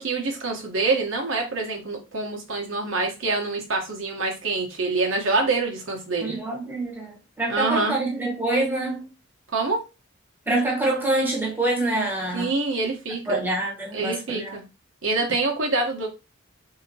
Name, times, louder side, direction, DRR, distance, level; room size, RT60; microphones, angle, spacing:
voice 1, 0.0-6.3 7.5-8.0 9.5-9.8 12.3-13.4 13.9-14.6 15.0-16.1, right 3 dB, 65° right, 1.1 m, -26 dB
voice 2, 6.2-9.1 10.5-12.5 13.3-14.5, right 2 dB, 10° right, 1.1 m, -26 dB
4.1 x 2.8 x 2.8 m
head